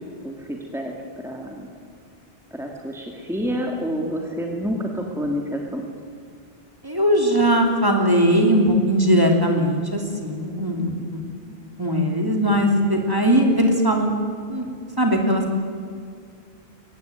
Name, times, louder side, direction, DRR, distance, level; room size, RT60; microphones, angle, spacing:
voice 1, 0.2-0.9 1.2-1.7 2.5-5.8, equal, ahead, 1 dB, 2.5 m, -28 dB
voice 2, 6.8-11.2 11.5-14.1 14.5-14.6 15.0-15.5, equal, 20° right, 2 dB, 3.2 m, -20 dB
23.0 x 18.5 x 9.3 m, 2.3 s
omnidirectional pair, 1.1 m